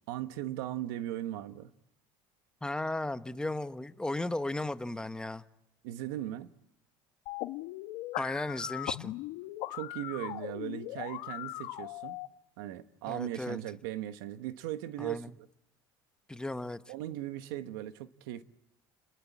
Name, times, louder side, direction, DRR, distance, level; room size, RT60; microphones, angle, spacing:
voice 1, 0.1-1.7 5.8-6.5 9.7-12.2 12.6-15.5 16.9-18.4, right 13 dB, 90° right, 1.4 m, -38 dB
voice 2, 2.6-5.4 8.2-9.1 13.1-13.6 15.0-15.3 16.3-16.8, left 2 dB, 5° left, 1.0 m, -35 dB
sound 1, 7.3-12.3, left 18 dB, 75° left, 1.5 m, -39 dB
30.0 x 21.0 x 8.5 m
cardioid pair, 120°, 11 cm